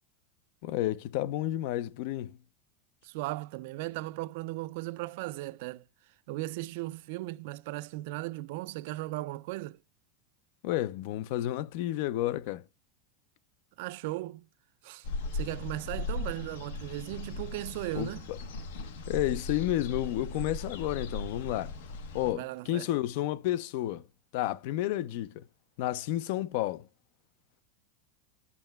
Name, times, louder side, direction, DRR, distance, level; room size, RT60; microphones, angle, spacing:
voice 1, 0.6-2.4 10.6-12.6 17.9-18.4 19.1-21.7 22.1-24.1 24.3-25.4 25.8-26.9, left 14 dB, 55° left, 0.4 m, -31 dB
voice 2, 3.0-5.8 6.3-9.8 13.8-14.5 14.8-15.1 15.3-18.3 22.3-22.9, right 18 dB, 60° right, 0.3 m, -37 dB
sound 1, 15.0-22.3, left 2 dB, 85° left, 1.1 m, -38 dB
11.0 x 6.3 x 2.2 m
supercardioid pair, 160°, 0 cm